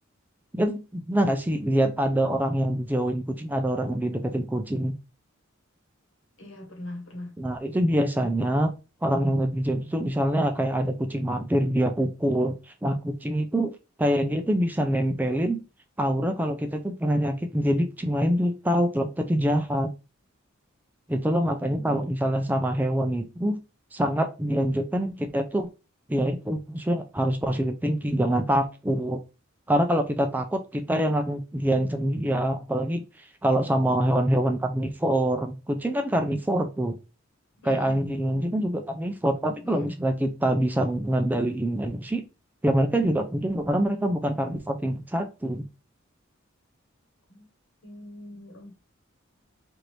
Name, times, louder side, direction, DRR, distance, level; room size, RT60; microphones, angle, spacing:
voice 1, 0.5-4.9 7.4-8.7 9.0-13.7 14.0-15.6 16.0-19.9 21.1-23.6 23.9-25.7 26.1-29.2 29.7-33.0 33.4-37.0 37.6-42.2 42.6-45.7, right 1 dB, 10° right, 0.4 m, -25 dB
voice 2, 6.4-7.3 8.1-8.3 31.7-32.0 37.6-38.0 38.3-38.6 39.6-39.9 47.3-47.5 47.8-48.8, left 1 dB, 70° left, 1.2 m, -42 dB
4.4 x 2.6 x 3.2 m
head